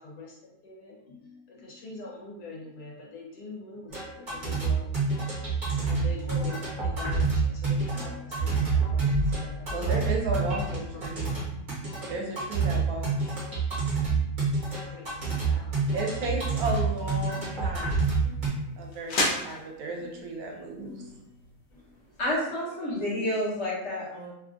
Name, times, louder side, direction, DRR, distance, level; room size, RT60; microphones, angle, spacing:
voice 1, 0.0-4.9 5.6-10.0 10.6-11.5 14.9-15.8 16.2-16.4 17.3-17.5 18.2-18.7 19.1-19.5 20.0-20.3 20.8-21.3 21.7-21.8 22.8-23.3, left 3 dB, 90° left, -3 dB, 1.4 m, -44 dB
sound 1, 3.9-18.5, right 4 dB, 35° right, 1.1 m, -28 dB
voice 2, 9.7-11.4 12.0-13.1 15.9-18.1 18.8-21.0, right 2 dB, 75° right, 0 dB, 1.1 m, -34 dB
sound 2, 16.7-22.3, left 1 dB, 70° left, 0.4 m, -36 dB
voice 3, 22.2-24.3, left 1 dB, 50° left, -8 dB, 1.2 m, -29 dB
3.1 x 2.4 x 2.4 m, 0.83 s
omnidirectional pair, 1.6 m